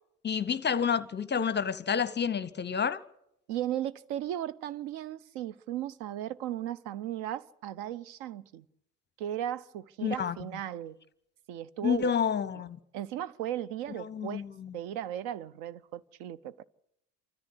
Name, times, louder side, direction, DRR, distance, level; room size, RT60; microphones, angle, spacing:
voice 1, 0.2-3.0 10.0-10.4 11.8-12.8 13.9-14.7, left 7 dB, 25° left, 0.8 m, -29 dB
voice 2, 3.5-8.6 9.2-11.0 11.5-12.1 12.9-14.4 14.7-16.6, right 11 dB, 55° right, 0.8 m, -36 dB
27.5 x 14.0 x 8.1 m
figure-of-eight pair, 60°, 45 cm